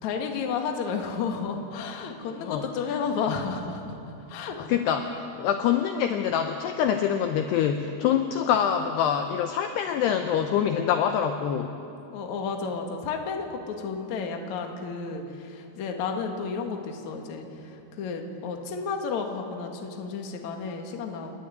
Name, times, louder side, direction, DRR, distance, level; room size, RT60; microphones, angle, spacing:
voice 1, 0.0-4.7 12.1-21.3, left 5 dB, 55° left, 3 dB, 2.1 m, -32 dB
voice 2, 4.6-11.7, left 8 dB, 80° left, 6 dB, 2.4 m, -25 dB
29.0 x 12.0 x 9.5 m, 2.7 s
omnidirectional pair, 5.7 m